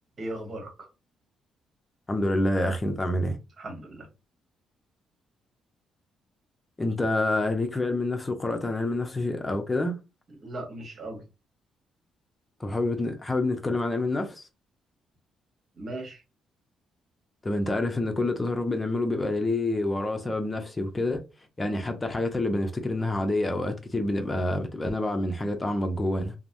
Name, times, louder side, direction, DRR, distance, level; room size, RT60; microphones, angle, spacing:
voice 1, 0.2-0.9 3.6-4.1 10.4-11.2 15.8-16.2, right 1 dB, 45° right, 1.2 m, -37 dB
voice 2, 2.1-3.4 6.8-9.9 12.6-14.5 17.4-21.2 21.6-26.3, left 2 dB, 20° left, 0.7 m, -27 dB
3.2 x 2.0 x 2.6 m
cardioid pair, 90°, 0 cm